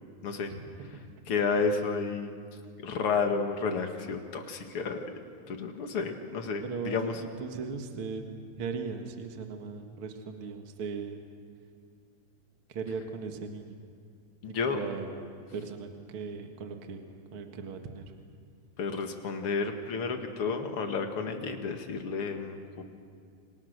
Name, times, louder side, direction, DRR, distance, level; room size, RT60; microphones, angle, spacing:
voice 1, 1.3-2.4 2.8-5.0 5.5-7.2 14.4-14.8 18.8-22.8, left 5 dB, 45° left, 5 dB, 2.3 m, -31 dB
voice 2, 6.6-8.2 8.6-11.2 12.7-13.8 14.7-15.1 15.5-17.0 17.3-18.0, right 5 dB, 45° right, 4 dB, 2.2 m, -38 dB
29.5 x 25.5 x 6.7 m, 2.3 s
omnidirectional pair, 4.0 m